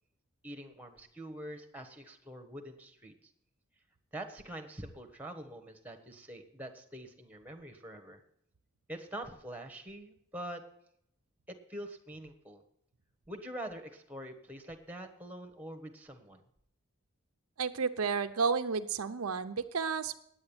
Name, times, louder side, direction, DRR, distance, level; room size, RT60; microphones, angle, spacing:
voice 1, 0.4-3.1 4.1-8.2 8.9-10.6 11.5-12.6 13.3-16.4, right 1 dB, 5° right, 5 dB, 1.2 m, -45 dB
voice 2, 17.6-20.2, right 5 dB, 80° right, 9 dB, 0.6 m, -32 dB
9.2 x 8.7 x 8.9 m, 0.73 s
head